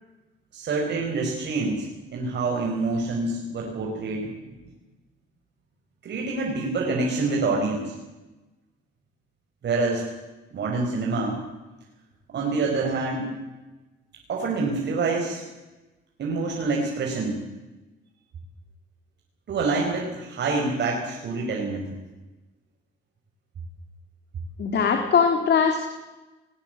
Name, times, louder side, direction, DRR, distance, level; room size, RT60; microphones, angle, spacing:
voice 1, 0.5-4.3 6.0-7.9 9.6-10.0 10.5-11.4 12.3-13.3 14.3-15.4 16.2-17.4 19.5-22.0, right 3 dB, 60° right, 0 dB, 4.9 m, -26 dB
voice 2, 24.6-25.9, left 6 dB, 60° left, 4 dB, 3.1 m, -21 dB
20.5 x 18.5 x 8.0 m, 1.1 s
cardioid pair, 90°, 20 cm